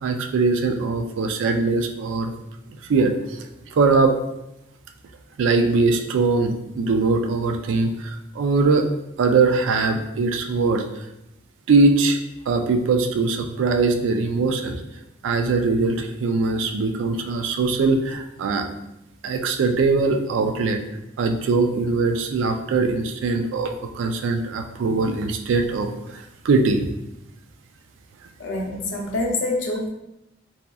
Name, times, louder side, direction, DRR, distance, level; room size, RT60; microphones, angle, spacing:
voice 1, 0.0-2.3 2.9-3.4 3.7-4.1 5.4-8.9 9.2-10.8 11.7-12.2 12.5-14.8 15.2-18.7 19.2-20.8 21.2-26.8, right 3 dB, 85° right, 6 dB, 0.3 m, -21 dB
voice 2, 28.4-29.9, left 2 dB, 85° left, 0 dB, 0.5 m, -26 dB
2.7 x 2.4 x 2.3 m, 0.88 s
head